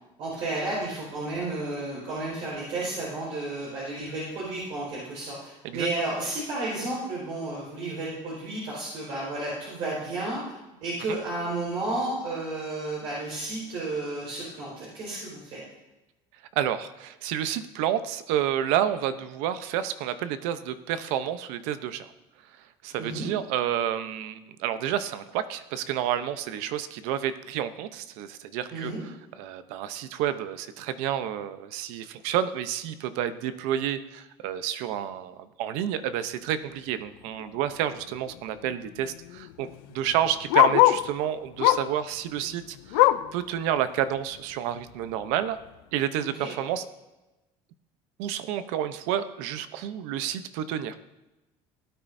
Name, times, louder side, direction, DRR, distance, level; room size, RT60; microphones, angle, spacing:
voice 1, 0.2-10.5 10.8-15.6 23.0-23.3 28.7-29.0 46.2-46.5, right 2 dB, 60° right, -6 dB, 4.4 m, -32 dB
voice 2, 16.6-22.1 22.6-45.6 45.9-46.9 48.2-51.0, right 10 dB, 80° right, 12 dB, 0.8 m, -30 dB
Bark, 37.4-37.6 38.0-38.1 38.3-41.1 41.6-42.0 42.4-43.4 43.8-43.9 44.3-44.4 45.1-45.2, left 16 dB, 90° left, 0.5 m, -23 dB
18.0 x 9.1 x 2.7 m, 1.0 s
cardioid pair, 140°, 11 cm